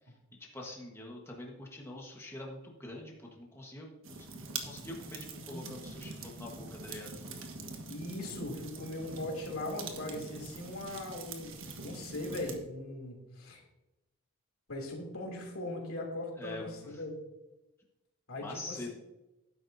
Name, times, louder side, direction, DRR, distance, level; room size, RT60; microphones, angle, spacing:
voice 1, 0.5-4.3 4.6-7.1 16.4-16.9 18.4-18.9, left 1 dB, 10° left, -2 dB, 1.3 m, -45 dB
sound 1, 4.0-12.6, right 4 dB, 70° right, 1.4 m, -44 dB
voice 2, 5.4-5.7 7.9-13.6 14.7-17.1 18.3-18.9, left 1 dB, 90° left, 0 dB, 2.9 m, -40 dB
12.5 x 10.5 x 2.7 m, 1.0 s
head